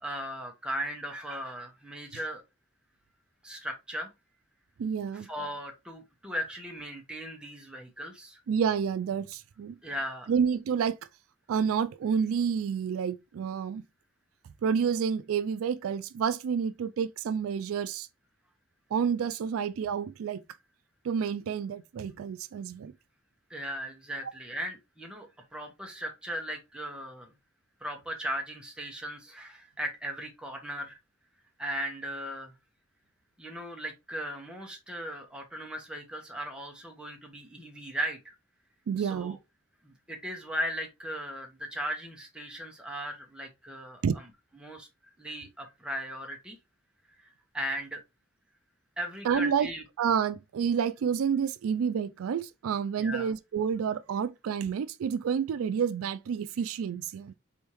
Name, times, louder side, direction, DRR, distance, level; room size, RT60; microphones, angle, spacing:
voice 1, 0.0-2.4 3.4-4.1 5.1-8.4 9.8-10.3 23.5-25.3 25.5-27.3 27.8-31.0 31.6-32.5 33.4-38.2 39.0-39.4 39.8-44.3 44.6-44.9 45.2-46.6 47.2-47.3 47.5-48.0 49.0-49.8 53.0-53.3, equal, 5° right, 1.1 m, -37 dB
voice 2, 4.8-5.3 8.5-9.8 10.3-11.0 11.5-13.8 14.6-18.1 18.9-20.4 21.0-22.9 38.9-39.4 44.0-44.2 49.2-49.7 50.0-57.3, right 7 dB, 85° right, 0.3 m, -29 dB
4.4 x 3.5 x 3.0 m
head